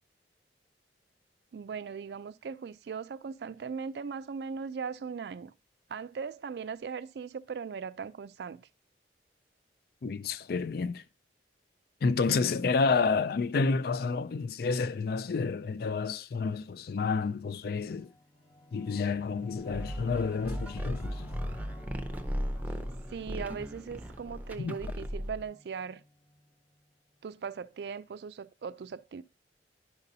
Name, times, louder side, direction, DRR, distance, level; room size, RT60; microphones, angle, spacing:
voice 1, 1.5-5.5 5.9-8.7 23.1-26.0 27.2-29.2, right 6 dB, 65° right, 0.3 m, -39 dB
voice 2, 10.0-11.0 12.0-18.1 18.7-21.4 24.6-24.7, left 4 dB, 60° left, 0.4 m, -29 dB
Singing / Musical instrument, 17.9-26.9, left 1 dB, 25° left, 0.8 m, -53 dB
sound 1, 19.7-25.4, equal, 10° right, 0.6 m, -37 dB
10.5 x 5.3 x 2.7 m
head